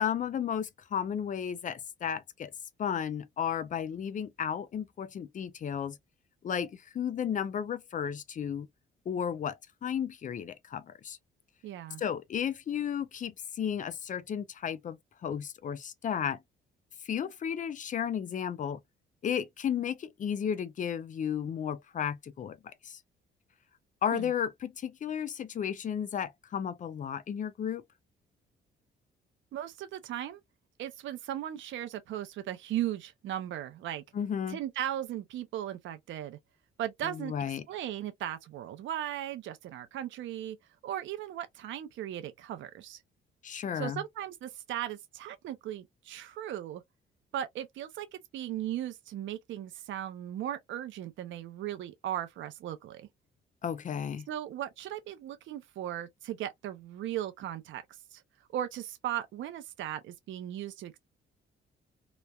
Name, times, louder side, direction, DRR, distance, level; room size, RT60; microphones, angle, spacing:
voice 1, 0.0-2.5 2.8-6.0 6.4-8.7 9.1-11.2 12.0-16.4 17.0-18.8 19.2-23.0 24.0-27.8 34.1-34.6 37.0-37.6 43.4-44.0 53.6-54.3, left 8 dB, 40° left, 0.4 m, -33 dB
voice 2, 11.6-12.0 24.1-24.3 29.5-30.4 30.8-34.0 34.5-36.4 36.8-37.3 37.7-40.6 40.8-43.0 43.8-46.8 47.3-53.1 54.3-57.8 58.1-58.2 58.5-61.0, right 11 dB, 75° right, 0.5 m, -37 dB
3.0 x 2.1 x 2.3 m
cardioid pair, 90°, 20 cm